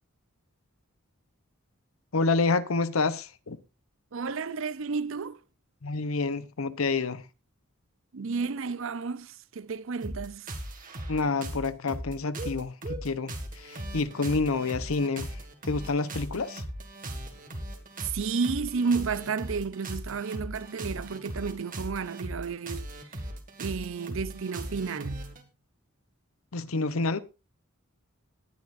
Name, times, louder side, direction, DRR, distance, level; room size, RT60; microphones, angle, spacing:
voice 1, 2.1-3.6 5.8-7.3 11.1-16.6 26.5-27.2, left 3 dB, 80° left, 0.9 m, -28 dB
voice 2, 4.1-5.4 8.1-10.6 18.0-23.2 23.6-25.4, right 5 dB, 65° right, 0.6 m, -32 dB
sound 1, 10.0-25.4, right 1 dB, 40° right, 2.0 m, -38 dB
19.0 x 9.7 x 2.6 m
head